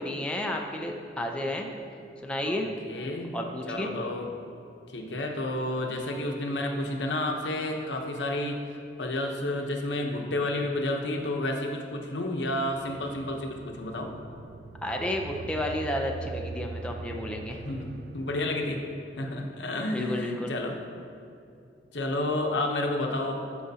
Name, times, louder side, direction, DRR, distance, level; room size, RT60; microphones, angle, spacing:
voice 1, 0.0-1.7 2.2-2.7 3.3-3.9 14.8-17.6 19.9-20.5, left 1 dB, 5° left, 1 dB, 0.5 m, -31 dB
voice 2, 2.4-3.4 3.7-4.3 4.9-8.6 9.0-14.1 17.6-18.8 19.2-20.8 21.9-23.4, left 1 dB, 90° left, 2 dB, 0.9 m, -31 dB
sound 1, 12.2-19.0, right 3 dB, 60° right, 0.3 m, -42 dB
13.5 x 4.9 x 2.8 m, 2.5 s
head